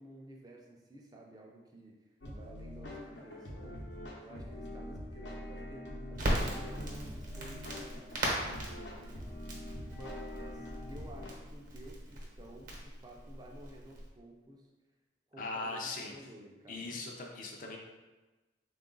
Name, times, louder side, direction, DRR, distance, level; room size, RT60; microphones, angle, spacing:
voice 1, 0.0-3.8 4.2-9.3 9.9-14.7 15.3-17.0, right 1 dB, 20° right, -1 dB, 0.5 m, -52 dB
sound 1, 2.2-11.3, left 1 dB, 90° left, 0.8 m, -44 dB
Crackle, 6.1-14.1, right 1 dB, 50° right, 0.9 m, -39 dB
voice 2, 15.4-16.1 16.7-17.8, left 3 dB, 50° left, 0 dB, 0.5 m, -39 dB
3.7 x 2.4 x 3.8 m, 1.2 s
head